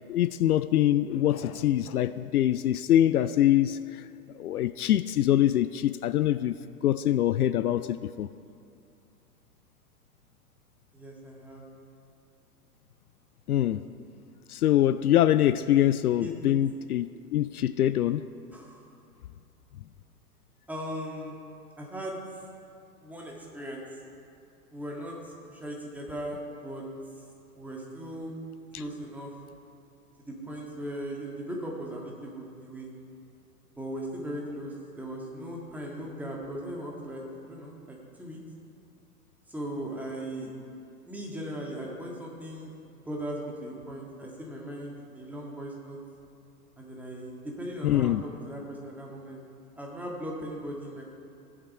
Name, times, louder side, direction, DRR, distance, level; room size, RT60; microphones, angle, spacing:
voice 1, 0.1-4.0 4.4-6.5 6.8-8.3 13.5-13.8 14.5-18.2 28.7-28.8 47.8-48.2, left 12 dB, 70° left, 14 dB, 0.5 m, -24 dB
voice 2, 10.9-11.6 16.2-16.3 18.5-18.8 20.7-21.4 21.8-22.2 23.0-23.8 24.7-26.8 27.6-28.3 28.7-29.3 30.3-32.9 33.8-38.4 39.5-40.5 41.1-42.7 43.1-46.0 46.8-49.4 49.8-51.0, equal, 5° right, -2 dB, 1.7 m, -38 dB
16.5 x 7.4 x 4.8 m, 2.5 s
figure-of-eight pair, 110°, 46 cm